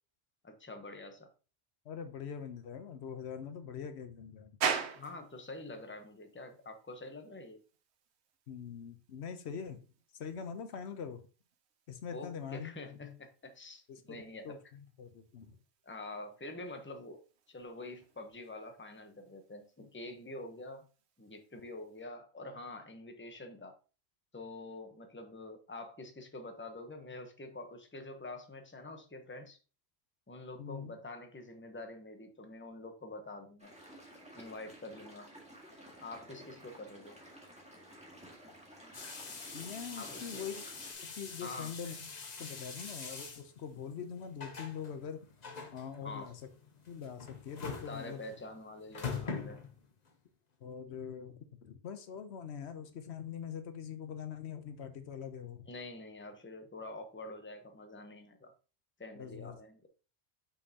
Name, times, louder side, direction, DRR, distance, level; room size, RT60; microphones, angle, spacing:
voice 1, 0.4-1.3 5.0-7.6 12.1-14.6 15.8-17.2 17.5-20.9 21.2-23.8 24.3-29.6 30.3-33.7 34.3-35.3 36.0-37.2 39.9-40.5 41.4-41.7 46.0-46.3 47.9-49.6 55.7-58.5 59.0-59.8, left 2 dB, 10° left, 0.8 m, -46 dB
voice 2, 1.9-4.6 8.5-9.8 10.2-11.2 11.9-12.7 13.9-15.6 30.6-30.9 39.5-40.7 41.0-42.1 42.4-45.2 45.7-46.4 46.9-48.2 50.6-55.7 59.2-59.5, left 7 dB, 80° left, 1.0 m, -43 dB
sound 1, 4.6-22.1, right 7 dB, 80° right, 1.1 m, -45 dB
sound 2, 33.6-40.9, equal, 5° right, 1.7 m, -53 dB
sound 3, 38.9-50.1, left 5 dB, 40° left, 1.0 m, -44 dB
6.5 x 5.6 x 2.8 m
omnidirectional pair, 1.1 m